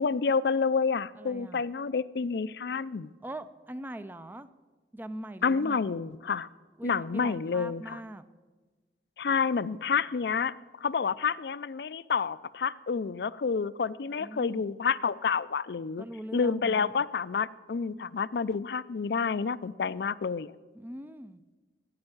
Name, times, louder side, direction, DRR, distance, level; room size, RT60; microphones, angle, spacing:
voice 1, 0.0-3.1 5.4-6.5 6.8-8.0 9.2-10.5 10.8-16.0 16.3-20.5, left 5 dB, 65° left, 17 dB, 0.4 m, -29 dB
voice 2, 1.2-1.6 3.2-4.5 4.9-5.8 6.8-8.3 14.2-14.6 16.0-16.9 20.7-21.4, right 1 dB, 10° right, 13 dB, 0.4 m, -41 dB
11.5 x 8.7 x 8.8 m, 1.3 s
head